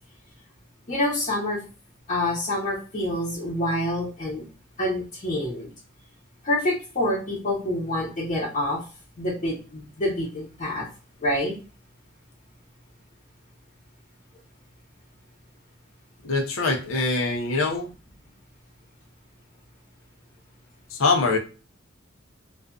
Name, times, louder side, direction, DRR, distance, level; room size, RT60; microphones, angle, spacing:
voice 1, 0.9-1.6 2.1-4.4 4.8-5.7 6.4-8.8 9.2-10.8 11.2-11.5, left 1 dB, 35° left, -9 dB, 0.8 m, -27 dB
voice 2, 16.2-17.9 20.9-21.4, left 3 dB, 75° left, 3 dB, 0.6 m, -23 dB
2.5 x 2.4 x 2.2 m, 0.34 s
head